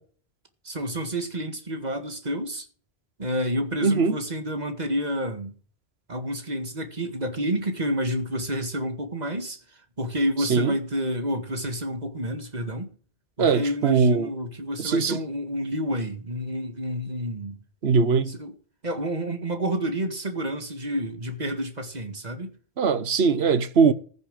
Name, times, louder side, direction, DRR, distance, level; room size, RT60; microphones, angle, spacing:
voice 1, 0.6-2.7 3.2-5.5 6.1-9.6 10.0-12.9 13.4-17.6 18.2-18.5 18.8-22.5, equal, 45° right, 2.1 m, -29 dB
voice 2, 3.8-4.2 10.5-10.7 13.4-14.3 14.8-15.2 17.8-18.3 22.8-23.9, right 5 dB, 85° right, 1.3 m, -21 dB
14.5 x 7.1 x 6.5 m
omnidirectional pair, 1.0 m